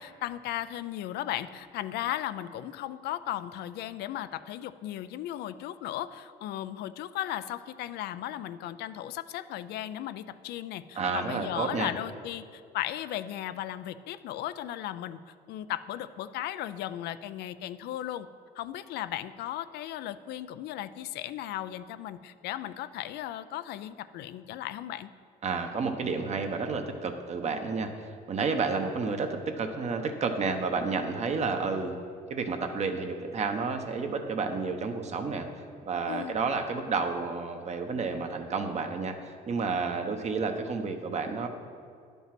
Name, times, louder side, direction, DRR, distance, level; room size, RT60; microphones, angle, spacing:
voice 1, 0.0-15.2 15.5-18.3 18.6-25.1 36.1-36.4, left 12 dB, 75° left, 13 dB, 0.4 m, -36 dB
voice 2, 11.0-11.9 25.4-27.9 28.3-32.0 32.3-35.5 35.9-41.5, right 4 dB, 40° right, 6 dB, 1.0 m, -30 dB
11.0 x 5.4 x 6.0 m, 2.3 s
cardioid pair, 110°, 17 cm